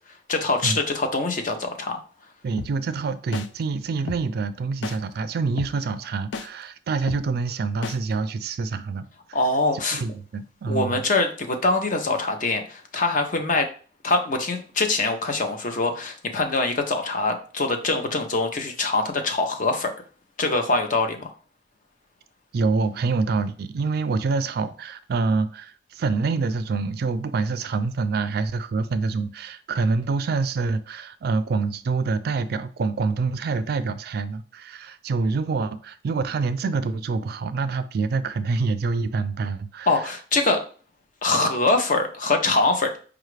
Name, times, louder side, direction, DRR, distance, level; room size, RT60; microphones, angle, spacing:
voice 1, 0.3-2.0 9.3-10.0 10.7-13.7 14.0-19.9 20.4-21.3 39.9-40.6 41.2-43.0, left 3 dB, 45° left, 0.6 m, -23 dB
voice 2, 2.4-9.1 9.7-11.0 22.5-40.0, right 4 dB, 60° right, 0.3 m, -26 dB
sound 1, 2.6-2.7 3.3-3.5 4.1-4.2 4.8-5.0 5.6-5.7 6.3-6.5 7.1-7.2 7.8-8.0, left 4 dB, 85° left, 0.4 m, -31 dB
4.9 x 2.4 x 3.2 m
head